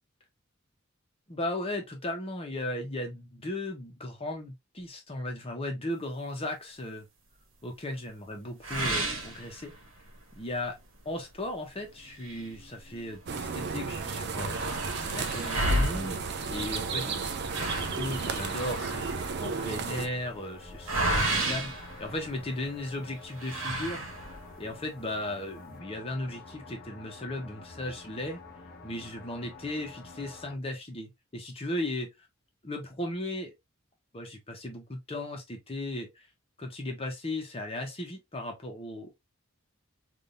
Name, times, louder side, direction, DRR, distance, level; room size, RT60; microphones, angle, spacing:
voice 1, 1.3-7.1 7.6-9.7 10.3-10.8 11.0-16.2 16.5-28.4 28.8-32.1 32.6-33.5 34.1-36.3 36.6-39.1, left 1 dB, 30° left, 1.0 m, -36 dB
sound 1, 8.6-10.1 10.5-10.6 11.1-11.2 12.0-13.3 13.6-13.7 13.9-22.7 23.4-24.5, right 1 dB, 70° right, 1.1 m, -32 dB
sound 2, 11.6-30.5, left 3 dB, 50° left, 0.8 m, -50 dB
sound 3, 13.3-20.1, right 5 dB, 55° right, 0.5 m, -34 dB
3.5 x 2.7 x 2.6 m
head